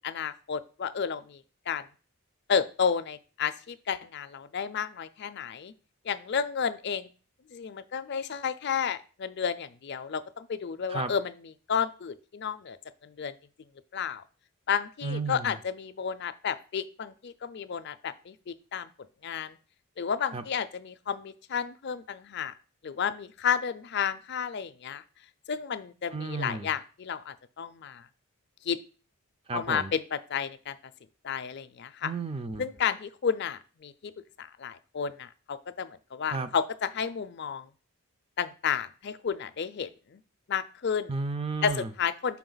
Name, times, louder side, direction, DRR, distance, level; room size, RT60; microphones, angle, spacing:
voice 1, 0.0-1.8 2.5-5.7 6.0-7.1 7.5-11.3 11.7-12.8 13.0-13.3 13.9-14.2 14.7-18.9 19.2-19.6 20.0-22.5 22.8-25.0 25.5-28.1 28.6-28.8 29.5-30.8 31.2-32.1 32.6-34.1 34.4-37.7 38.4-40.2 40.5-41.1 41.6-42.4, left 7 dB, 50° left, 11 dB, 0.4 m, -32 dB
voice 2, 15.0-15.5 20.3-20.4 26.1-26.7 29.5-29.9 32.0-32.7 36.3-36.5 41.1-41.9, right 3 dB, 25° right, 9 dB, 0.4 m, -33 dB
5.9 x 4.7 x 3.9 m, 0.36 s
head